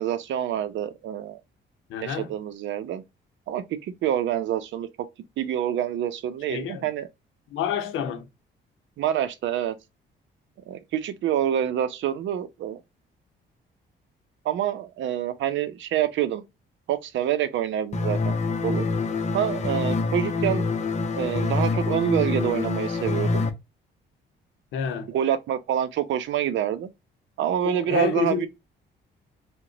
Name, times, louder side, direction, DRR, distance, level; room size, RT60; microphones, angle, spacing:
voice 1, 0.0-1.4 2.0-3.0 3.5-4.9 5.4-7.1 9.0-9.7 10.7-12.8 14.4-16.4 16.9-18.3 18.6-18.9 19.3-20.7 21.2-23.5 25.1-26.9 27.4-28.5, right 10 dB, 70° right, 0.6 m, -27 dB
voice 2, 1.9-2.3 6.5-6.9 7.5-8.3 24.7-25.1 27.6-28.5, left 7 dB, 85° left, 0.7 m, -28 dB
sound 1, 17.9-23.5, left 3 dB, 35° left, 0.6 m, -26 dB
2.8 x 2.1 x 3.8 m
cardioid pair, 90°, 20 cm